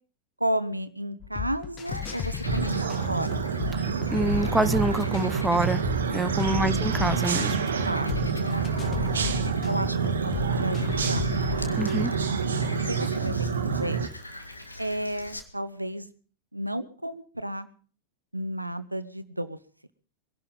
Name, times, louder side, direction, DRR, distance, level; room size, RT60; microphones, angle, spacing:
voice 1, 0.4-3.5 6.5-6.9 7.8-8.8 9.6-10.0 10.2-11.2 12.9-13.3 13.6-14.0 14.8-16.1 16.5-17.7 18.3-19.6, right 1 dB, 85° right, 1.0 m, -32 dB
sound 1, 1.2-12.0, left 9 dB, 30° left, 1.5 m, -35 dB
Frog, 1.8-15.4, left 2 dB, 85° left, 2.0 m, -43 dB
sound 2, 2.4-14.1, right 5 dB, 65° right, 1.6 m, -27 dB
voice 2, 4.1-5.8 6.1-7.6 11.8-12.1, right 2 dB, 5° right, 0.8 m, -26 dB
22.5 x 11.5 x 5.4 m
figure-of-eight pair, 90°, 0 cm